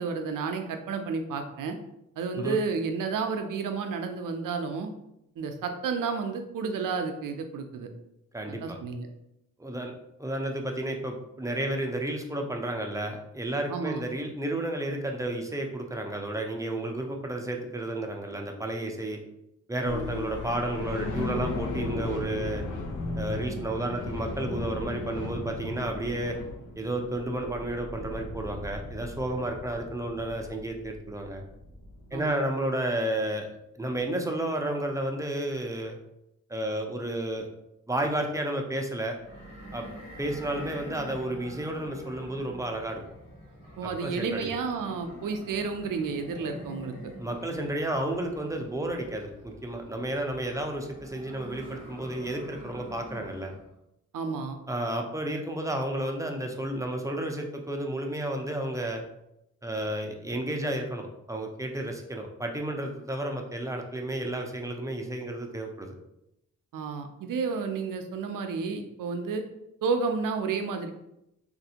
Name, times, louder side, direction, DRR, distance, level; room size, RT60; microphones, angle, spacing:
voice 1, 0.0-1.8 2.2-4.9 5.4-7.9 8.5-9.1 13.7-14.0 32.1-32.4 43.8-46.9 54.1-54.6 66.7-69.4 69.8-70.9, right 5 dB, 75° right, 6 dB, 0.5 m, -31 dB
voice 2, 8.3-8.8 9.6-9.9 10.2-19.2 19.7-22.6 23.2-26.4 26.8-31.4 32.1-33.5 33.7-36.0 36.5-37.5 37.9-39.2 39.7-39.9 40.2-43.0 43.8-44.5 47.2-53.5 54.7-59.0 59.6-65.9, right 1 dB, 10° right, 2 dB, 0.5 m, -32 dB
sound 1, 19.8-32.3, left 2 dB, 65° left, 0.7 m, -36 dB
sound 2, 39.2-53.7, equal, 85° left, 1.5 m, -46 dB
3.2 x 2.5 x 2.8 m, 0.84 s
cardioid pair, 65°, 33 cm